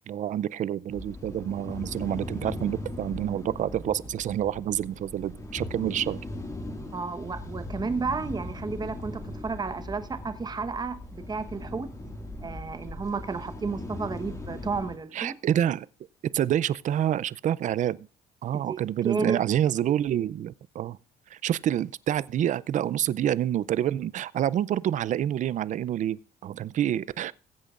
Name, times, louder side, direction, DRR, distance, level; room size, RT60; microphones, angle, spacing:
voice 1, 0.1-6.2 15.1-15.9 16.3-18.1 18.4-21.0 21.3-27.3, right 11 dB, 50° right, 0.5 m, -27 dB
sound 1, 0.9-15.0, left 1 dB, 20° left, 2.0 m, -39 dB
voice 2, 6.9-11.9 12.4-15.4 18.5-18.8 19.0-19.4 19.8-19.9, right 4 dB, 25° right, 1.1 m, -32 dB
21.0 x 8.3 x 2.5 m
cardioid pair, 110°, 17 cm